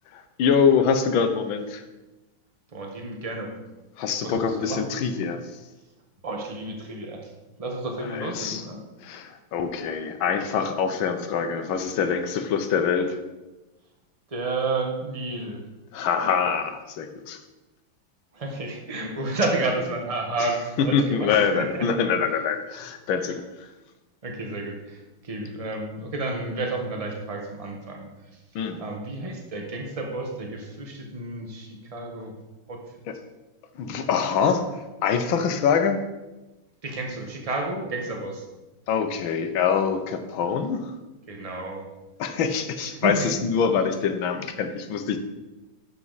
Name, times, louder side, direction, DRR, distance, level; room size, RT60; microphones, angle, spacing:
voice 1, 0.1-1.8 4.0-5.4 8.0-8.6 9.0-13.2 15.9-17.4 20.9-23.4 28.5-28.8 33.1-33.2 33.8-36.0 38.9-40.9 42.2-45.2, left 6 dB, 85° left, 8 dB, 1.7 m, -24 dB
voice 2, 2.7-3.6 4.2-4.9 6.2-7.3 7.6-8.8 14.3-15.6 18.3-21.9 23.2-23.4 24.2-28.1 28.8-32.3 32.7-32.8 36.8-38.4 41.3-41.9 42.9-43.3, right 2 dB, 20° right, 1 dB, 1.3 m, -31 dB
11.0 x 7.3 x 4.1 m, 1.1 s
omnidirectional pair, 2.1 m